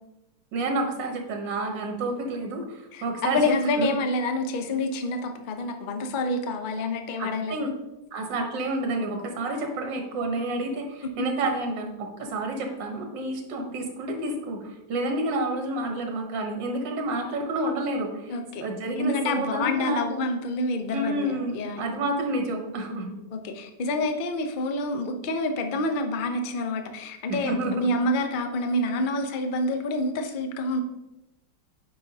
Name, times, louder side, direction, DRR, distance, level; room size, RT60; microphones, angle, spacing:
voice 1, 0.5-3.4 3.8-3.9 7.2-7.7 8.1-18.3 18.6-20.2 20.9-23.1 27.3-28.0, right 2 dB, 80° right, 3 dB, 1.7 m, -29 dB
voice 2, 2.9-7.6 18.3-18.7 19.0-22.0 23.3-30.8, left 2 dB, 80° left, 5 dB, 0.4 m, -28 dB
8.8 x 5.4 x 2.7 m, 0.98 s
omnidirectional pair, 2.0 m